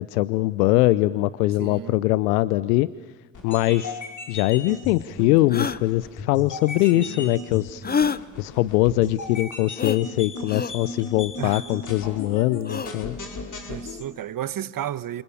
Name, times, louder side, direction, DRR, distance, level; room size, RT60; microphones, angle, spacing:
voice 1, 0.0-2.9 3.4-4.0 4.3-7.8 8.4-13.2, left 17 dB, 75° left, 0.8 m, -22 dB
voice 2, 1.6-2.0 6.9-7.3 11.4-11.6 13.7-15.2, right 11 dB, 45° right, 1.2 m, -33 dB
sound 1, 3.3-14.0, left 3 dB, 40° left, 5.5 m, -36 dB
sound 2, 4.5-4.6 5.5-5.8 7.8-8.2 9.8-10.0 10.5-10.7 12.6-12.9, left 6 dB, 20° left, 1.0 m, -26 dB
29.0 x 28.0 x 7.2 m
hypercardioid pair, 55°, 45 cm